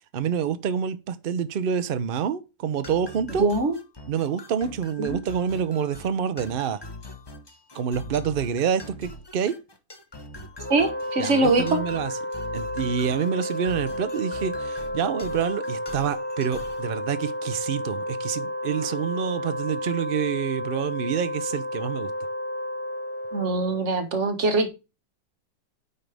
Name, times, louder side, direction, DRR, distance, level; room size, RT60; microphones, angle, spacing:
voice 1, 0.1-3.5 4.1-6.8 7.7-9.6 11.2-12.1 12.5-22.1, right 8 dB, 75° right, 0.5 m, -27 dB
sound 1, 2.8-16.9, left 2 dB, 20° left, 0.9 m, -42 dB
voice 2, 3.4-3.8 5.0-5.2 10.7-11.6 23.3-24.7, right 3 dB, 45° right, 1.5 m, -22 dB
Wind instrument woodwind instrument, 10.6-24.0, left 1 dB, 20° right, 1.1 m, -32 dB
9.0 x 5.5 x 3.4 m
omnidirectional pair, 1.8 m